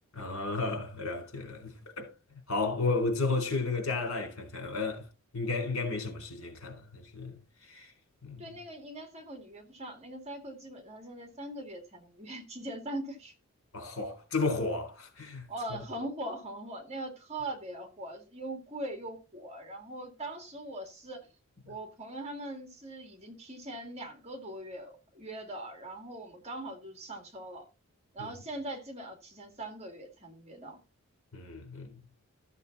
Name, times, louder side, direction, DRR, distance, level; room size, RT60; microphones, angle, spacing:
voice 1, 0.2-2.1 2.5-5.1 5.3-7.9 8.2-8.5 13.7-15.5 28.2-28.3 31.3-32.0, left 3 dB, 70° left, 3.8 m, -33 dB
voice 2, 8.4-13.3 15.5-21.3 21.7-27.6 28.1-30.8, right 1 dB, 30° right, 2.4 m, -41 dB
13.5 x 7.1 x 4.1 m
head